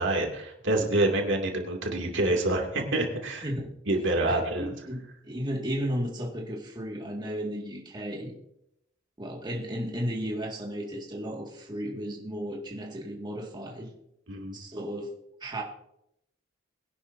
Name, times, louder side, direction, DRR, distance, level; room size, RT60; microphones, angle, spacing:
voice 1, 0.0-3.5 3.9-4.7 14.3-14.6, right 2 dB, 65° right, 1 dB, 2.6 m, -27 dB
voice 2, 3.4-3.7 4.3-8.3 9.2-13.9 14.5-15.1 15.4-15.6, equal, 20° right, -2 dB, 2.1 m, -34 dB
21.5 x 11.0 x 2.7 m, 0.77 s
head